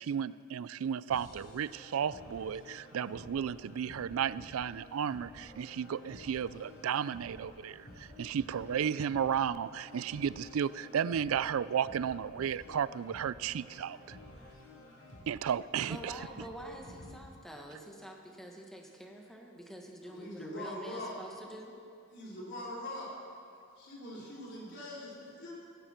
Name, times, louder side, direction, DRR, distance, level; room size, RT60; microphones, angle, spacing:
voice 1, 0.0-14.2 15.3-16.2, right 8 dB, 75° right, 18 dB, 0.4 m, -33 dB
sound 1, 1.1-17.1, left 1 dB, 90° left, 3.7 m, -53 dB
voice 2, 15.9-21.7, equal, ahead, 0 dB, 1.6 m, -47 dB
voice 3, 20.0-21.1 22.1-23.1 23.8-25.5, left 1 dB, 55° left, -5 dB, 4.1 m, -42 dB
17.0 x 15.0 x 4.5 m, 2.5 s
head